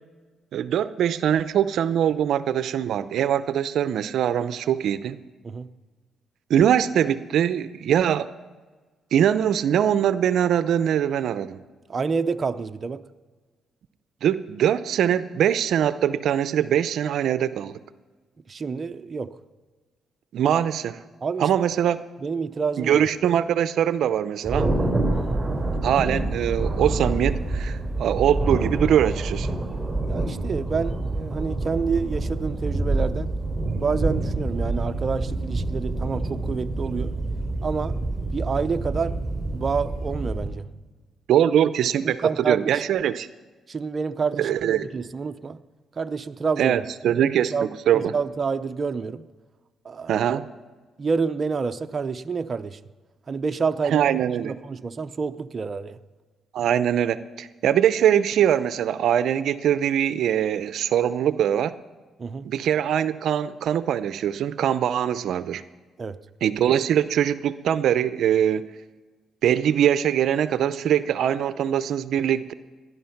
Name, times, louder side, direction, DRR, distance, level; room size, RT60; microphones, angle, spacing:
voice 1, 0.5-5.2 6.5-8.3 9.1-11.6 14.2-17.8 20.3-21.0 21.4-22.0 22.8-24.7 25.8-29.5 41.3-43.3 44.4-45.0 46.6-47.5 47.9-48.1 50.1-50.4 53.9-54.5 56.5-61.7 62.4-65.6 66.4-68.7 69.4-72.5, right 10 dB, 70° right, 13 dB, 0.6 m, -22 dB
voice 2, 11.9-13.0 18.5-19.3 21.2-21.5 22.2-23.0 25.1-25.4 30.1-33.3 33.7-37.1 37.6-38.0 38.3-40.7 42.0-42.8 43.7-45.6 46.0-46.7 47.0-47.1 47.5-49.3 49.8-50.2 51.0-52.8 53.3-54.1 54.4-56.0 62.2-62.5 66.0-66.2, right 5 dB, 35° right, 8 dB, 0.7 m, -28 dB
Thunder, 24.4-40.5, right 2 dB, 10° right, 3.8 m, -27 dB
19.0 x 11.0 x 5.8 m, 1.3 s
cardioid pair, 90°, 0 cm